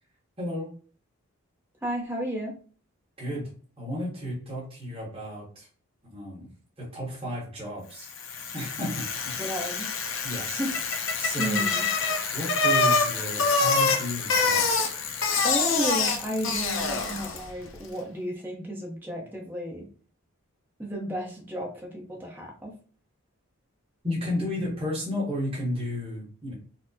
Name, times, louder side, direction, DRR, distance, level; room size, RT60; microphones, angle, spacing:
voice 1, 0.4-0.7 3.2-3.5 3.8-5.7 6.0-6.5 6.8-8.1 8.5-9.6 10.2-10.6 11.2-11.6 12.3-14.7 24.0-26.5, left 1 dB, 25° right, -5 dB, 1.1 m, -33 dB
voice 2, 1.8-2.5 9.4-9.9 10.5-10.8 11.4-11.9 15.4-19.9 20.8-22.7, equal, 10° right, -2 dB, 0.6 m, -32 dB
Bicycle, 8.1-17.5, left 4 dB, 60° left, 0.5 m, -26 dB
4.2 x 2.0 x 2.7 m, 0.42 s
head